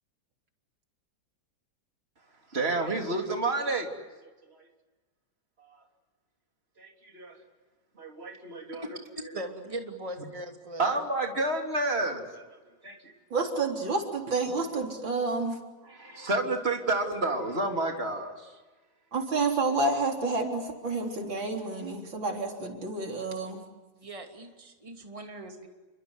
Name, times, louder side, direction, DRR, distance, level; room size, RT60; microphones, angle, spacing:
voice 1, 2.5-3.9 4.2-4.7 5.6-5.8 6.8-7.4 8.0-9.0 10.8-13.1 15.8-18.6, right 2 dB, 30° right, 3 dB, 3.6 m, -30 dB
voice 2, 9.3-11.0 24.0-25.7, right 1 dB, 15° right, 3 dB, 2.9 m, -40 dB
voice 3, 13.3-15.6 19.1-23.6, right 3 dB, 85° right, 2 dB, 4.5 m, -29 dB
29.5 x 24.5 x 8.2 m, 1.2 s
omnidirectional pair, 2.0 m